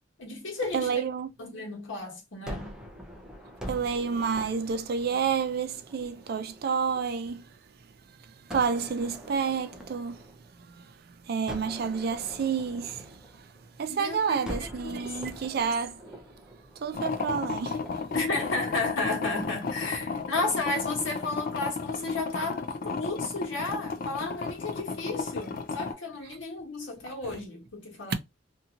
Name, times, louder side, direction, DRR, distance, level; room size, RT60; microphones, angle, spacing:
voice 1, 0.2-1.1 1.4-2.9 13.9-15.2 18.1-28.1, left 3 dB, 85° left, 1.3 m, -33 dB
voice 2, 0.7-1.3 3.7-7.4 8.5-10.2 10.6-10.8 11.3-13.2 13.8-16.0 16.8-17.8 27.2-27.3, right 6 dB, 55° right, 0.4 m, -29 dB
Gunshot gunfire, 2.5-7.6 8.5-10.9 11.5-13.9 14.4-19.7, equal, 5° right, 0.5 m, -44 dB
sound 1, 16.9-25.9, left 4 dB, 50° left, 0.4 m, -34 dB
2.7 x 2.7 x 2.4 m
head